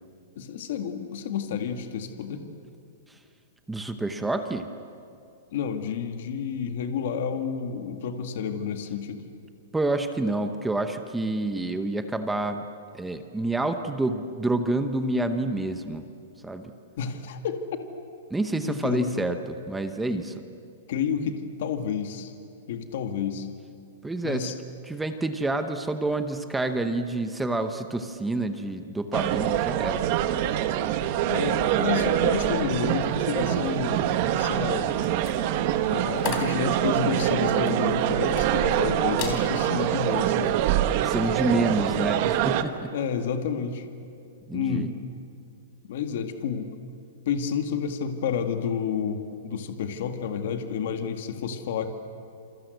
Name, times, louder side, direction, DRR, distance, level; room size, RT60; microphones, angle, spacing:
voice 1, 0.4-2.4 5.5-9.2 17.0-17.6 18.6-19.1 20.1-20.3 20.9-22.3 22.7-23.5 24.2-24.5 31.2-34.0 34.3-34.9 35.8-40.6 42.9-43.9 44.5-44.9 45.9-46.7 47.3-51.9, left 7 dB, 45° left, 6 dB, 2.0 m, -30 dB
voice 2, 3.7-4.7 9.7-12.6 12.9-16.0 16.4-16.7 18.3-20.3 24.0-24.5 24.9-30.0 41.0-42.9 44.5-44.9, right 2 dB, 5° right, 7 dB, 0.8 m, -28 dB
sound 1, 29.1-42.6, right 11 dB, 30° right, 1.1 m, -25 dB
sound 2, 35.0-38.8 39.1-39.4 39.9-40.2, left 7 dB, 30° left, 3.6 m, -37 dB
28.0 x 26.5 x 8.0 m, 2.5 s
hypercardioid pair, 180°, 0 cm